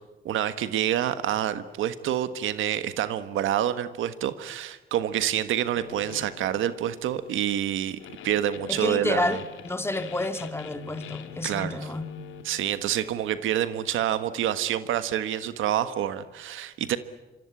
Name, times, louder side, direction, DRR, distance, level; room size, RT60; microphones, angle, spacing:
voice 1, 0.2-9.4 11.4-11.9 12.4-17.0, right 11 dB, 80° right, 11 dB, 1.5 m, -27 dB
sound 1, 5.7-13.4, left 9 dB, 80° left, 2.2 m, -45 dB
voice 2, 8.7-12.0, left 2 dB, 10° left, 8 dB, 2.2 m, -29 dB
27.0 x 24.0 x 8.5 m, 1.1 s
cardioid pair, 90°, 20 cm